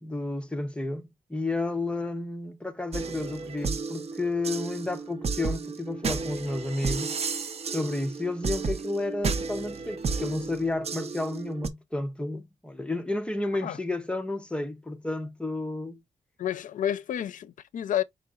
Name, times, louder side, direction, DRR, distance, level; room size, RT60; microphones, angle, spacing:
voice 1, 0.0-7.1 7.7-16.0, left 2 dB, 10° left, 0.6 m, -31 dB
sound 1, 2.9-11.7, right 4 dB, 50° right, 0.7 m, -33 dB
voice 2, 16.4-18.0, left 10 dB, 85° left, 0.5 m, -30 dB
5.1 x 3.9 x 2.3 m
wide cardioid pair, 140°, 13 cm